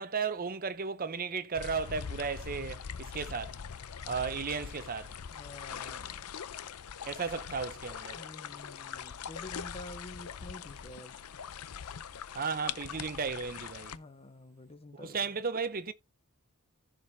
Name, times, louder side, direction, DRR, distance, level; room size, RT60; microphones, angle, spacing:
voice 1, 0.0-3.6 4.1-5.1 7.0-8.2 12.3-13.9 14.9-15.9, right 5 dB, 40° right, 0.7 m, -35 dB
sound 1, 1.5-14.0, left 7 dB, 85° left, 0.6 m, -42 dB
voice 2, 5.3-6.3 8.1-11.2 13.9-15.4, left 1 dB, 25° left, 0.7 m, -48 dB
15.0 x 5.0 x 2.7 m
head